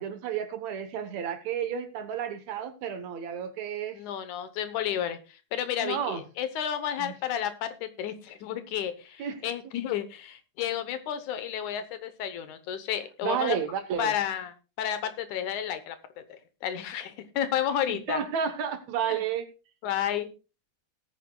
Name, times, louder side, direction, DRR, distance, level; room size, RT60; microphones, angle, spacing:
voice 1, 0.0-4.0 5.8-6.2 7.0-7.1 9.2-9.4 13.2-14.1 17.9-19.5, right 8 dB, 65° right, 2.2 m, -31 dB
voice 2, 3.9-13.6 14.0-18.2 19.1-19.2 19.8-20.3, left 10 dB, 75° left, 2.3 m, -32 dB
19.0 x 9.1 x 2.3 m
omnidirectional pair, 3.6 m